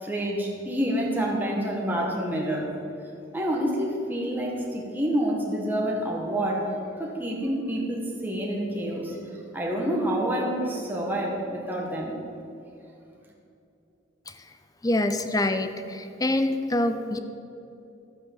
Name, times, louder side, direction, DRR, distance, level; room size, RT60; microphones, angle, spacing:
voice 1, 0.0-2.7 3.3-6.7 7.0-9.1 9.5-12.1, right 1 dB, 10° right, -2 dB, 1.7 m, -28 dB
voice 2, 14.8-17.2, left 1 dB, 20° left, 9 dB, 0.6 m, -25 dB
12.5 x 9.2 x 7.3 m, 2.7 s
head